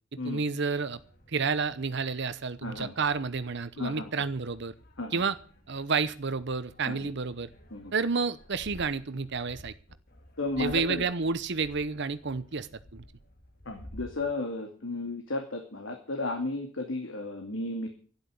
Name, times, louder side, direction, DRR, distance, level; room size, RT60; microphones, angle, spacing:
voice 1, 0.1-1.0 1.3-4.7 5.1-5.4 5.7-7.5 7.9-9.7 10.6-13.0, right 4 dB, 60° right, 13 dB, 0.9 m, -30 dB
sound 1, 0.6-14.3, left 1 dB, 50° left, 2.6 m, -53 dB
voice 2, 2.6-2.9 3.8-4.3 5.0-5.2 6.9-7.1 7.7-7.9 10.4-11.1 13.7-17.9, left 2 dB, 75° left, 3 dB, 2.4 m, -34 dB
12.5 x 9.9 x 8.3 m, 0.41 s
head